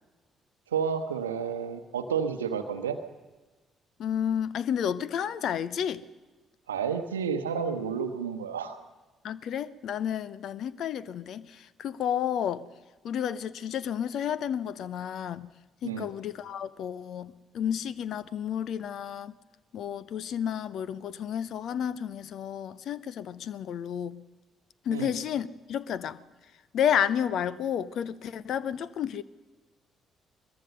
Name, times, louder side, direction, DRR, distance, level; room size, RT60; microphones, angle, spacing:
voice 1, 0.7-3.0 6.7-8.8 15.8-16.1 24.9-25.1, right 6 dB, 80° right, 0.9 m, -30 dB
voice 2, 4.0-6.0 9.2-12.6 13.0-15.5 15.8-19.3 19.7-24.2 24.9-26.2 26.7-29.2, left 9 dB, 55° left, 0.7 m, -31 dB
22.0 x 21.5 x 6.6 m
figure-of-eight pair, 45°, 0 cm